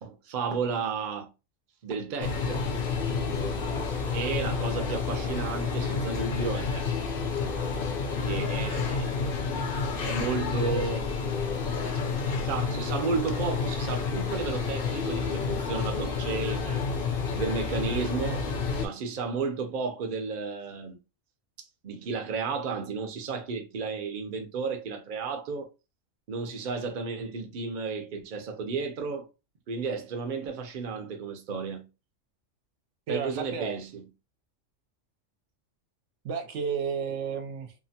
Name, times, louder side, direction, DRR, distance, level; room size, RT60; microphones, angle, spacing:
voice 1, 0.0-1.3 1.8-2.7 3.1-6.8 8.2-9.4 10.0-11.1 12.2-16.8 17.3-18.4 18.8-21.0 21.6-25.7 26.3-29.3 29.7-31.9 33.1-34.1, right 5 dB, 50° right, 0.6 m, -33 dB
sound 1, 2.2-18.9, left 5 dB, 55° left, 0.7 m, -30 dB
voice 2, 33.1-33.8 36.2-37.7, right 6 dB, 70° right, 0.9 m, -32 dB
2.8 x 2.1 x 2.7 m
omnidirectional pair, 1.3 m